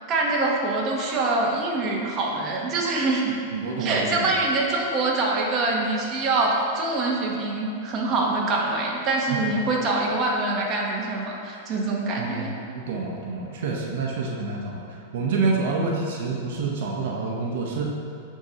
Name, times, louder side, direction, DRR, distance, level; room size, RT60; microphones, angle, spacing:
voice 1, 0.1-3.3 3.8-12.5, right 2 dB, 30° right, -2 dB, 0.9 m, -24 dB
voice 2, 3.5-4.3 12.2-12.5 12.7-17.8, right 4 dB, 65° right, -1 dB, 0.8 m, -27 dB
9.4 x 3.7 x 2.8 m, 2.7 s
supercardioid pair, 140°, 0 cm